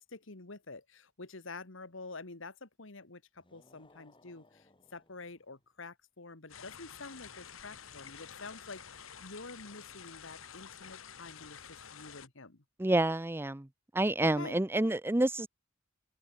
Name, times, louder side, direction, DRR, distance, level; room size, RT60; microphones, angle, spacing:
voice 1, 0.0-12.6 14.2-14.6, left 3 dB, 70° left, 2.1 m, -48 dB
sound 1, 3.3-5.7, left 2 dB, 25° left, 6.1 m, -64 dB
sound 2, 6.5-12.3, left 8 dB, 90° left, 1.8 m, -50 dB
voice 2, 12.8-13.7 13.9-15.5, right 1 dB, 10° right, 0.6 m, -28 dB
open air
head